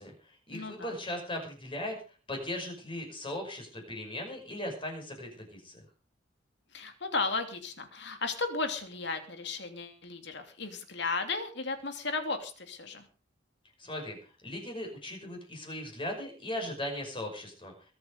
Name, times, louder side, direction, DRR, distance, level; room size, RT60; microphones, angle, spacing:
voice 1, 0.0-2.0 2.3-5.8 13.8-14.2 14.4-17.7, left 1 dB, 25° left, 2 dB, 5.6 m, -38 dB
voice 2, 0.5-1.0 6.7-13.0, left 3 dB, 55° left, 6 dB, 2.9 m, -35 dB
22.0 x 8.5 x 5.2 m, 0.38 s
head